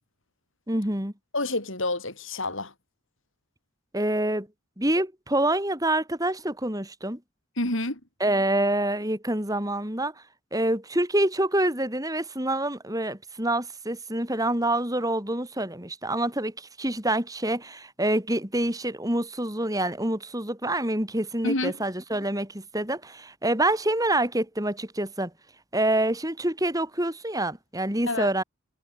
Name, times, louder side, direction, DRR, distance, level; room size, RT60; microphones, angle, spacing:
voice 1, 0.7-1.1 3.9-4.5 4.8-7.2 8.2-10.1 10.5-25.3 25.7-28.4, right 1 dB, 15° right, 4.1 m, -26 dB
voice 2, 1.3-2.7 7.6-8.0 21.4-21.7 28.1-28.3, left 2 dB, 65° left, 6.0 m, -28 dB
head